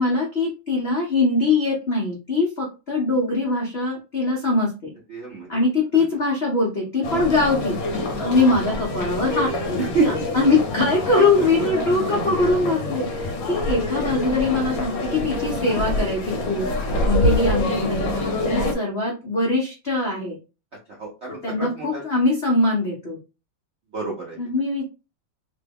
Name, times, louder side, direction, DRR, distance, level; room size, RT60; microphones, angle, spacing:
voice 1, 0.0-4.9 5.5-16.7 17.0-20.4 21.4-23.2 24.4-24.8, left 2 dB, 85° left, -2 dB, 0.5 m, -22 dB
voice 2, 5.1-5.6 9.9-10.1 11.1-11.5 16.5-16.8 21.0-22.0 23.9-24.4, right 4 dB, 80° right, -3 dB, 0.6 m, -27 dB
sound 1, 7.0-18.7, left 2 dB, 70° left, 1.3 m, -26 dB
3.3 x 2.2 x 3.4 m, 0.31 s
omnidirectional pair, 2.4 m